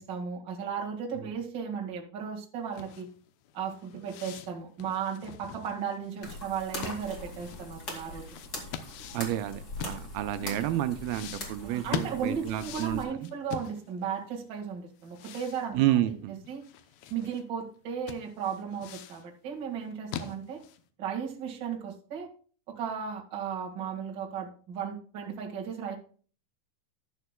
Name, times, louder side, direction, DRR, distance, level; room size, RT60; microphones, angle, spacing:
voice 1, 0.0-3.1 3.5-8.3 11.6-16.0 16.5-16.6 17.1-20.6 21.0-22.3 22.7-25.9, right 7 dB, 40° right, 0 dB, 1.9 m, -35 dB
sound 1, 2.7-10.5 11.0-14.2 14.5-14.6 15.0-17.4 17.8-17.9 18.1-19.3 19.7-20.9, left 9 dB, 90° left, 2.7 m, -43 dB
sound 2, 6.2-13.0, left 2 dB, 30° left, 2.3 m, -42 dB
voice 2, 9.1-13.3 15.7-16.4, right 13 dB, 85° right, 9 dB, 2.4 m, -30 dB
12.5 x 11.5 x 2.3 m, 0.41 s
omnidirectional pair, 4.3 m